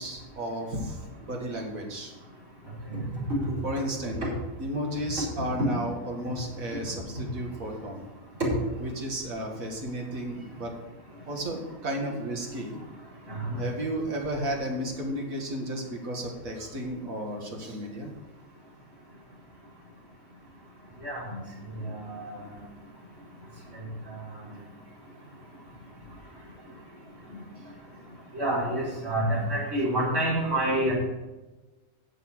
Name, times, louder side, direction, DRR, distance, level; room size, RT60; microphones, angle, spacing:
voice 1, 0.0-2.1 3.6-4.3 4.6-8.0 8.8-10.7 11.3-12.8 13.6-18.1, right 1 dB, 80° right, 1 dB, 2.4 m, -33 dB
voice 2, 13.3-13.6 21.0-21.4 21.7-22.5 28.3-30.9, right 1 dB, 60° right, -7 dB, 5.3 m, -28 dB
10.5 x 7.0 x 6.4 m, 1.1 s
omnidirectional pair, 1.4 m